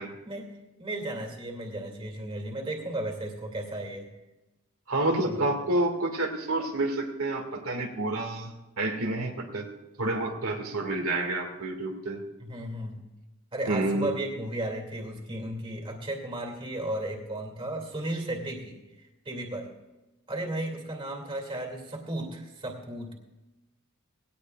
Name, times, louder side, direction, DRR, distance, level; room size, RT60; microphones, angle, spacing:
voice 1, 0.2-4.1 5.2-5.5 12.4-13.0 13.5-19.7 20.3-23.1, right 1 dB, 25° right, 2 dB, 2.6 m, -35 dB
voice 2, 4.9-9.7 10.0-12.2 13.7-14.1, right 2 dB, 90° right, 1 dB, 2.1 m, -29 dB
19.5 x 18.0 x 2.4 m, 1.1 s
head